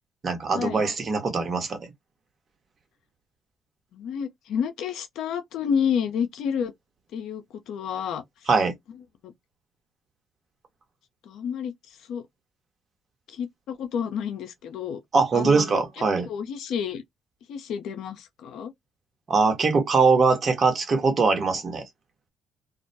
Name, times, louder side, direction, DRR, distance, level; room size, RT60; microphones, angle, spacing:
voice 1, 0.2-1.8 8.5-8.7 15.1-16.3 19.3-21.8, right 4 dB, 50° right, 1.0 m, -22 dB
voice 2, 3.9-6.7 7.1-8.2 9.2-9.3 11.2-12.2 13.3-15.0 15.3-15.8 16.2-17.0 17.5-18.7, left 7 dB, 75° left, 0.5 m, -30 dB
2.3 x 2.1 x 2.7 m
supercardioid pair, 60°, 0 cm